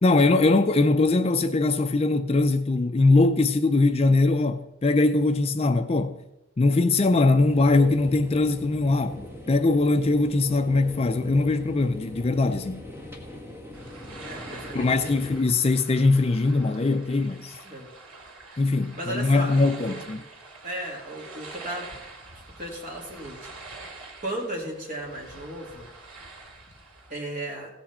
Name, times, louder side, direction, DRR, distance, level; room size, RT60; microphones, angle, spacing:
voice 1, 0.0-6.2 6.6-12.8 14.7-17.6 18.6-20.2, left 3 dB, 30° left, 0.4 m, -21 dB
sound 1, 7.4-15.4, left 1 dB, 10° right, 1.6 m, -41 dB
sound 2, 13.7-27.1, right 3 dB, 85° right, 2.5 m, -45 dB
voice 2, 14.2-15.1 17.6-17.9 18.9-19.6 19.8-20.0 20.6-21.9 22.6-23.4 24.2-25.9 27.1-27.7, right 1 dB, 40° right, 2.7 m, -35 dB
16.0 x 8.1 x 4.3 m
head